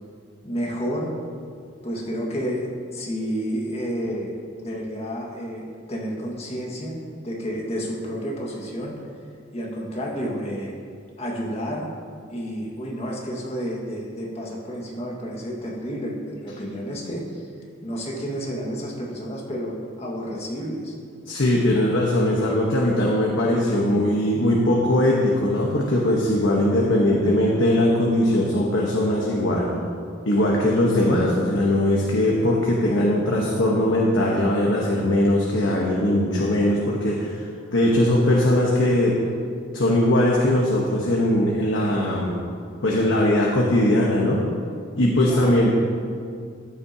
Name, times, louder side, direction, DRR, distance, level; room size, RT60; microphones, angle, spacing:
voice 1, 0.4-1.2 1.8-9.0 9.5-10.7 11.2-11.9 12.3-17.5 17.8-20.9 32.4-32.6 45.2-45.7, equal, 35° left, -3 dB, 1.8 m, -30 dB
voice 2, 21.3-29.7 30.2-39.1 39.7-42.3 42.8-44.4 45.0-45.7, left 1 dB, 75° left, -3 dB, 1.2 m, -20 dB
14.0 x 9.5 x 2.9 m, 2.3 s
head